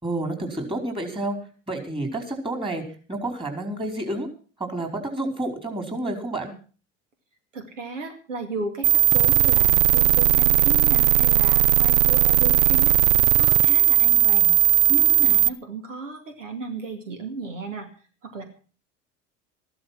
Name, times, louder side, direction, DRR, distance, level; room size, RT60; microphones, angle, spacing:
voice 1, 0.0-1.4 1.7-2.8 3.1-4.3 4.6-6.5, right 2 dB, 15° right, 4 dB, 4.9 m, -29 dB
voice 2, 7.5-14.5 14.9-17.9 18.2-18.4, right 3 dB, 85° right, 6 dB, 2.3 m, -34 dB
sound 1, 8.8-15.5, right 12 dB, 70° right, 0.8 m, -17 dB
14.5 x 12.0 x 6.1 m, 0.40 s
hypercardioid pair, 70°, 37 cm